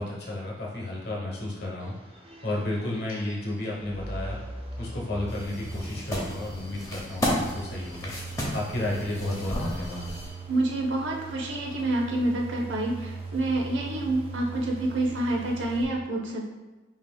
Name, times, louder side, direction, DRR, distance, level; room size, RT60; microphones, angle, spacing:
voice 1, 0.0-4.4 4.8-10.2, left 1 dB, 60° left, -3 dB, 1.0 m, -33 dB
sound 1, 1.8-15.8, right 3 dB, 30° right, 0.5 m, -40 dB
sound 2, 5.3-10.3, equal, 15° left, 0.7 m, -33 dB
voice 2, 10.5-16.4, right 2 dB, 80° right, -1 dB, 0.8 m, -28 dB
5.6 x 2.9 x 2.3 m, 1.2 s
head